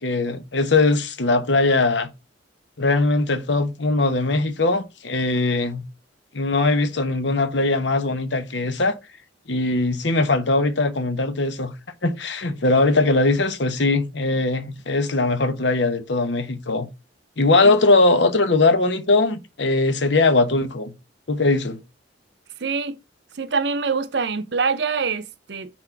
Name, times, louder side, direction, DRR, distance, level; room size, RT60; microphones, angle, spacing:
voice 1, 0.0-2.1 2.8-5.8 6.3-9.0 9.5-11.7 12.0-16.9 17.4-20.9 21.3-21.8, left 3 dB, 70° left, 1.0 m, -20 dB
voice 2, 22.6-23.0 23.3-25.7, right 5 dB, 65° right, 0.6 m, -25 dB
6.0 x 4.2 x 4.5 m
head